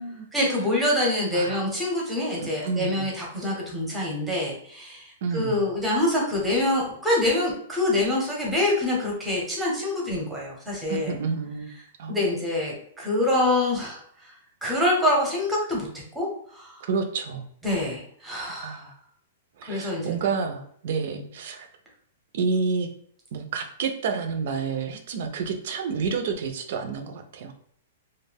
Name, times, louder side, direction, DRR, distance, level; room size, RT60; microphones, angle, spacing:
voice 1, 0.3-11.1 12.1-14.3 14.6-15.9 16.1-16.3 16.5-16.8 17.6-18.9 19.6-20.1, left 1 dB, 5° right, -3 dB, 0.7 m, -25 dB
voice 2, 1.3-1.6 2.4-3.1 5.2-5.6 10.9-11.7 12.0-12.2 16.9-17.5 18.6-18.9 19.6-21.7 22.3-22.9 23.3-27.5, right 5 dB, 55° right, 6 dB, 0.4 m, -29 dB
2.2 x 2.1 x 3.3 m, 0.63 s
hypercardioid pair, 165°, 0 cm